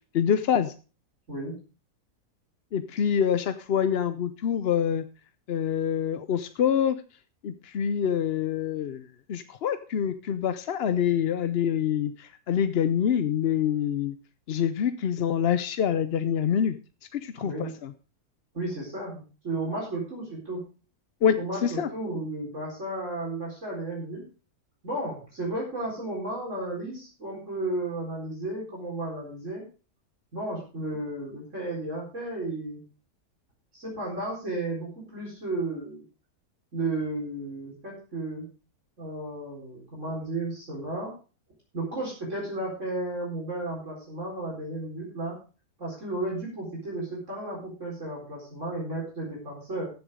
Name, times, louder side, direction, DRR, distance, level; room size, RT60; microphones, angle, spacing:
voice 1, 0.1-0.7 2.7-5.0 5.5-7.0 7.4-9.0 9.3-14.1 14.5-16.7 17.1-17.9 21.2-21.9, left 8 dB, 55° left, 11 dB, 0.7 m, -26 dB
voice 2, 17.4-17.7 18.5-20.6 21.4-24.2 24.8-29.6 30.3-32.8 33.7-36.0 36.7-38.5 39.0-41.1 41.7-45.4 45.8-49.9, right 2 dB, 50° right, -4 dB, 4.7 m, -33 dB
14.5 x 7.0 x 4.9 m, 0.35 s
omnidirectional pair, 1.6 m